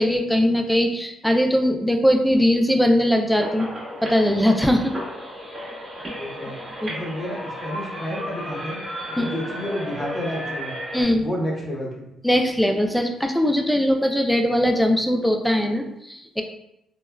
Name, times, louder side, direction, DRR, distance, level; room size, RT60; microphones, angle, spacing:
voice 1, 0.0-3.7 4.0-4.9 6.8-6.9 9.2-9.3 10.9-11.2 12.2-16.4, equal, ahead, 4 dB, 0.4 m, -20 dB
sound 1, 3.4-11.0, equal, 25° right, 1.0 m, -34 dB
voice 2, 6.0-6.6 6.9-10.8 11.2-12.1, equal, 30° left, -2 dB, 0.8 m, -31 dB
3.3 x 2.1 x 2.2 m, 0.82 s
cardioid pair, 90°, 0 cm